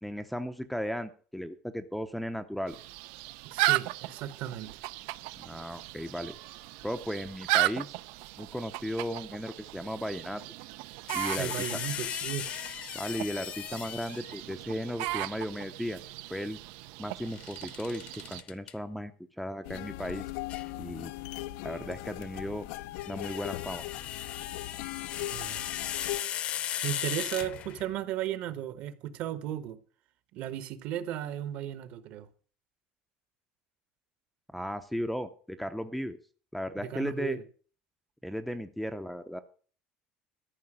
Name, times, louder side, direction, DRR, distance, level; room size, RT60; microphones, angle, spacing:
voice 1, 0.0-2.7 5.4-6.3 6.8-7.9 8.4-10.4 11.1-11.5 12.9-16.0 16.3-16.6 17.0-18.0 18.3-19.1 19.4-20.2 20.8-21.1 21.6-22.7 23.1-23.8 34.5-36.2 36.5-37.4 38.2-39.4, equal, ahead, 0.5 m, -35 dB
sound 1, 2.7-18.4, right 19 dB, 70° right, 0.5 m, -36 dB
voice 2, 3.4-4.7 11.3-12.5 25.3-25.6 26.8-29.8 30.3-32.3 36.8-37.4, right 11 dB, 50° right, 1.1 m, -35 dB
sound 2, 11.1-14.4 17.3-18.7 20.5-20.7 22.8-27.9, left 11 dB, 40° left, 0.8 m, -37 dB
sound 3, 19.6-26.2, left 17 dB, 80° left, 0.6 m, -39 dB
13.5 x 5.8 x 8.7 m
cardioid pair, 175°, 3 cm